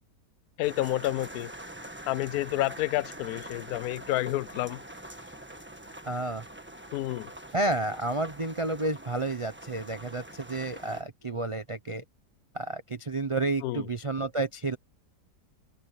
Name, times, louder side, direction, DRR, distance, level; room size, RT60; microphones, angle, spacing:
voice 1, 0.6-1.5 2.1-4.8 6.9-7.3 13.6-13.9, left 16 dB, 70° left, 0.9 m, -29 dB
sound 1, 0.6-11.0, right 1 dB, 5° right, 1.1 m, -45 dB
voice 2, 6.0-6.4 7.5-12.0 12.5-14.8, right 2 dB, 50° right, 0.3 m, -31 dB
omnidirectional pair, 1.9 m